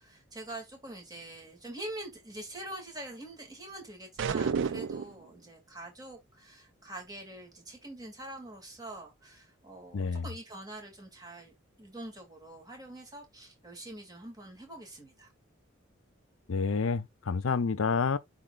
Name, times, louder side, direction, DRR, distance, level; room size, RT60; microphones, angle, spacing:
voice 1, 0.0-11.5 11.8-15.3, right 1 dB, 20° right, 2.5 m, -45 dB
sound 1, 4.2-5.2, right 6 dB, 65° right, 0.4 m, -30 dB
voice 2, 9.9-10.3 16.5-18.2, left 5 dB, 80° left, 0.6 m, -29 dB
12.0 x 4.1 x 2.5 m
head